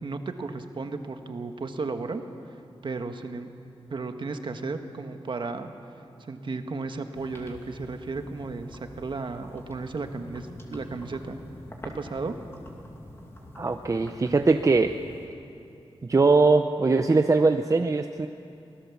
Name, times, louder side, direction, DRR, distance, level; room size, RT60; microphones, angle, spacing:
voice 1, 0.0-2.2 2.8-3.5 3.9-5.7 6.3-11.4 11.8-12.3, right 3 dB, 55° right, 6 dB, 1.4 m, -34 dB
sound 1, 7.1-15.3, left 1 dB, 25° left, 2.5 m, -46 dB
voice 2, 13.5-14.9 16.1-18.3, right 3 dB, 35° right, 6 dB, 0.7 m, -21 dB
24.5 x 17.5 x 7.2 m, 2.7 s
wide cardioid pair, 115°, 10 cm